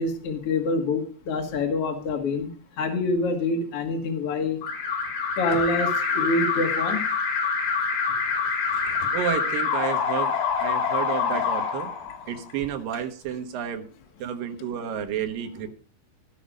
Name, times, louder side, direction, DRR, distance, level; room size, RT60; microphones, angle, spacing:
voice 1, 0.0-2.5 2.8-4.6 5.3-7.0, left 3 dB, 50° left, 2 dB, 2.0 m, -26 dB
Alarm, 4.6-12.5, left 5 dB, 70° left, 4.5 m, -26 dB
voice 2, 9.1-10.3 10.6-11.9 12.3-13.8 14.2-15.7, right 9 dB, 65° right, 6 dB, 2.8 m, -30 dB
16.5 x 5.9 x 5.1 m, 0.42 s
omnidirectional pair, 4.7 m